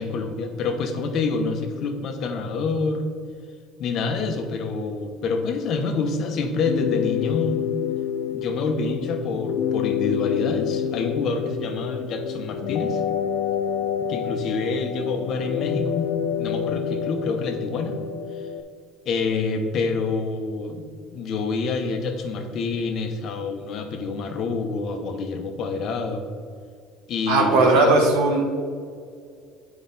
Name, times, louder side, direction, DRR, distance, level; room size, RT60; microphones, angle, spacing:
voice 1, 0.0-3.0 3.8-7.7 8.3-13.0 14.0-16.1 16.4-18.0 19.0-20.8 21.1-26.2 27.1-27.9, left 4 dB, 50° left, 5 dB, 1.0 m, -27 dB
sound 1, 6.6-18.6, left 8 dB, 70° left, 0.4 m, -28 dB
voice 2, 27.3-28.4, right 2 dB, 90° right, 1 dB, 1.3 m, -18 dB
8.4 x 5.0 x 4.1 m, 2.2 s
cardioid pair, 125°, 0 cm